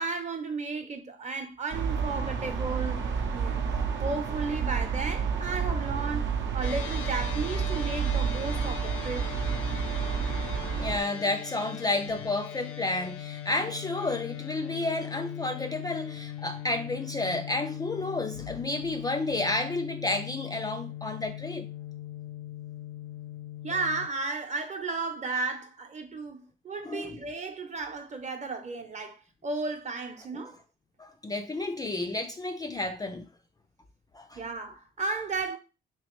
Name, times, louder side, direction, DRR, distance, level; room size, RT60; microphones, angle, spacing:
voice 1, 0.0-3.7 4.0-9.3 23.6-30.6 34.4-35.6, right 4 dB, 35° right, 0.8 m, -34 dB
sound 1, 1.7-11.0, right 6 dB, 70° right, 0.7 m, -30 dB
sound 2, 6.6-24.1, left 11 dB, 85° left, 0.6 m, -40 dB
voice 2, 10.8-21.7 26.8-27.2 31.0-33.3 34.1-34.4, left 2 dB, 20° left, 0.3 m, -31 dB
3.3 x 3.0 x 3.0 m
cardioid pair, 90°, 20 cm